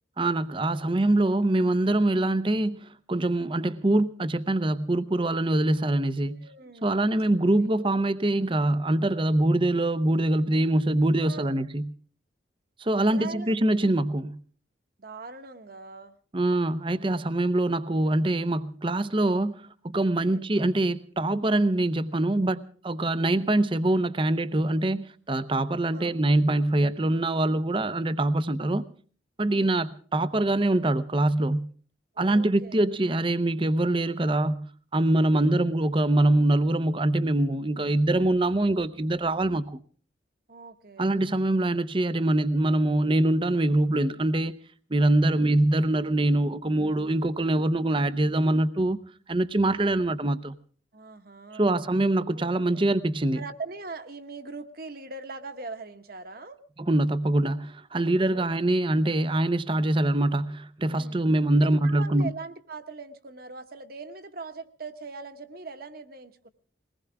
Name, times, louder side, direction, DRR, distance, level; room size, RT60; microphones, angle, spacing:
voice 1, 0.2-6.5 6.8-11.9 12.8-14.4 16.3-28.8 29.4-31.7 32.2-34.7 34.9-39.8 41.0-44.6 44.9-49.0 49.3-50.6 51.5-53.4 56.9-62.3, right 1 dB, 25° right, 0.7 m, -24 dB
voice 2, 6.3-7.0 7.6-8.1 11.2-11.6 13.0-13.6 15.0-16.2 20.2-20.5 25.9-26.2 29.5-29.8 32.1-32.9 35.3-35.6 40.5-41.1 45.2-45.5 50.9-51.8 52.3-52.9 53.3-56.6 58.3-58.5 60.8-61.3 61.6-66.5, right 3 dB, 50° right, 1.2 m, -41 dB
22.0 x 19.0 x 3.5 m
head